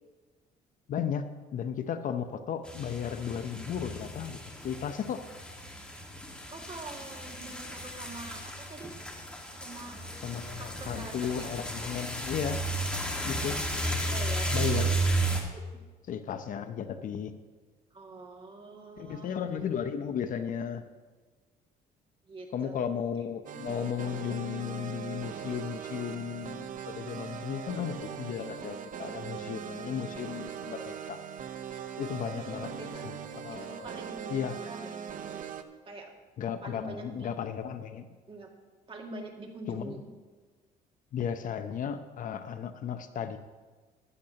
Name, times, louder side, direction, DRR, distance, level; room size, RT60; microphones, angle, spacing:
voice 1, 0.9-1.3 1.5-5.2 10.2-12.6 13.2-13.6 14.5-14.9 16.1-17.3 19.0-20.8 22.5-31.2 32.0-32.7 33.0-33.2 33.4-33.9 34.3-34.6 36.4-38.1 39.7-40.0 41.1-43.4, left 8 dB, 50° left, 9 dB, 0.7 m, -34 dB
sound 1, 2.7-15.4, right 2 dB, 5° left, 1.7 m, -34 dB
voice 2, 6.5-8.9 9.6-11.5 14.1-14.9 15.5-15.6 17.9-19.7 22.2-22.8 32.3-33.0 33.5-34.3 34.6-34.9 35.8-36.1 36.6-37.3 38.3-38.5 38.9-40.1, right 2 dB, 30° right, 1 dB, 2.2 m, -45 dB
sound 2, 23.5-35.6, right 8 dB, 55° right, 0.8 m, -40 dB
15.5 x 11.5 x 2.9 m, 1.4 s
cardioid pair, 110°, 17 cm